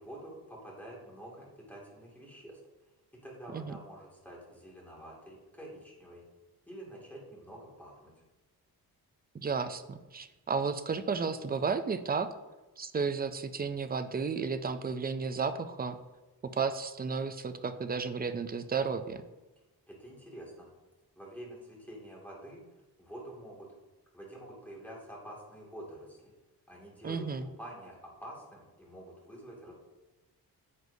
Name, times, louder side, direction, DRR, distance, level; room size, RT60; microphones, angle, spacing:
voice 1, 0.0-2.6 3.2-6.2 6.7-8.1 19.9-20.7 21.2-22.6 23.0-23.7 24.1-26.3 26.7-27.9 28.2-29.7, right 1 dB, 5° left, -4 dB, 2.2 m, -47 dB
voice 2, 9.3-12.3 12.8-16.0 16.4-19.2 27.0-27.5, right 5 dB, 25° right, 10 dB, 0.4 m, -33 dB
9.6 x 7.7 x 2.7 m, 1.1 s
wide cardioid pair, 160°, 37 cm